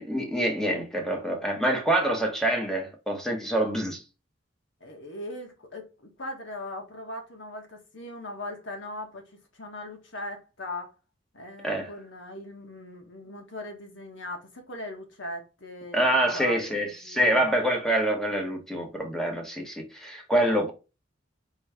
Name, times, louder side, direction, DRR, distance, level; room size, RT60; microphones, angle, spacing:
voice 1, 0.0-4.0 11.6-11.9 15.9-20.7, right 1 dB, 5° left, 1.0 m, -26 dB
voice 2, 4.8-10.9 11.3-17.6, left 1 dB, 70° left, 1.3 m, -39 dB
4.6 x 3.0 x 3.4 m
head